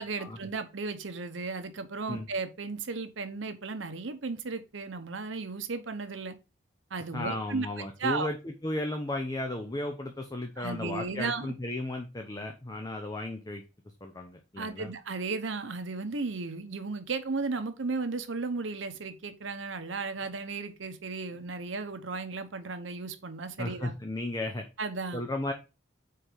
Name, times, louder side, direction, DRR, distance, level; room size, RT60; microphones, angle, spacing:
voice 1, 0.0-6.4 6.9-7.7 8.0-8.3 10.6-11.5 14.6-23.9 24.8-25.2, right 4 dB, 80° right, 0.9 m, -35 dB
voice 2, 7.1-13.6 14.0-14.9 23.6-24.7 25.1-25.5, left 1 dB, 20° left, 0.6 m, -34 dB
4.7 x 4.5 x 5.0 m
head